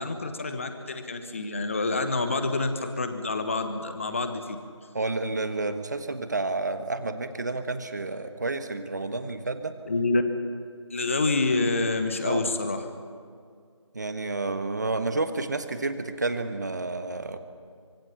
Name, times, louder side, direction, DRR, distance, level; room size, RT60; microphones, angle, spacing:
voice 1, 0.0-4.6 9.8-10.2 10.9-12.9, left 3 dB, 25° left, 7 dB, 1.3 m, -27 dB
voice 2, 4.9-9.7 12.2-12.4 13.9-17.4, right 3 dB, 35° right, 9 dB, 1.4 m, -30 dB
25.0 x 24.0 x 5.9 m, 2.2 s
figure-of-eight pair, 165°, 16 cm